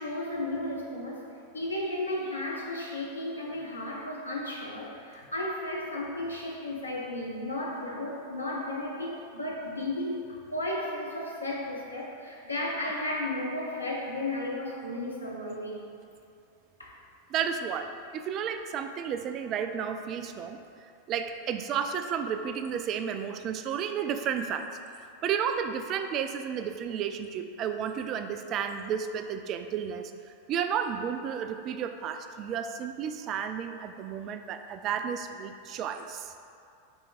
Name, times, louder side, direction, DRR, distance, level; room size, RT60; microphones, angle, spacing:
voice 1, 0.0-15.9 16.8-16.9, left 1 dB, 80° left, -3 dB, 1.0 m, -34 dB
voice 2, 17.3-20.6 21.1-24.7 25.0-30.1 30.5-36.3, right 7 dB, 35° right, 8 dB, 0.3 m, -32 dB
9.5 x 4.5 x 2.4 m, 2.5 s
figure-of-eight pair, 90°, 0 cm